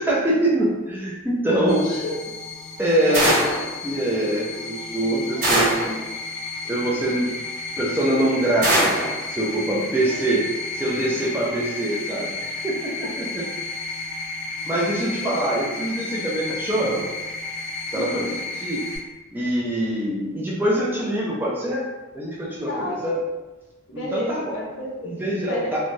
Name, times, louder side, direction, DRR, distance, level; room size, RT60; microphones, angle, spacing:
voice 1, 0.0-1.9 2.8-3.3 3.8-6.0 6.7-7.3 7.8-10.5 10.7-13.4 14.6-17.0 17.9-18.3 18.6-18.9 19.3-21.9 22.1-23.2 23.9-24.4 25.1-25.8, right 1 dB, 10° right, -5 dB, 0.4 m, -24 dB
voice 2, 1.6-2.2 3.0-3.4 5.3-5.7 9.9-10.2 15.1-15.4 17.9-18.3 22.7-23.2 23.9-25.2 25.5-25.8, equal, 60° left, -4 dB, 0.7 m, -31 dB
sound 1, 1.7-19.0, left 3 dB, 85° left, 1.1 m, -33 dB
sound 2, 3.1-3.7 5.4-5.9 8.6-9.1, right 1 dB, 40° right, 1.1 m, -20 dB
3.1 x 2.2 x 2.6 m, 1.1 s
head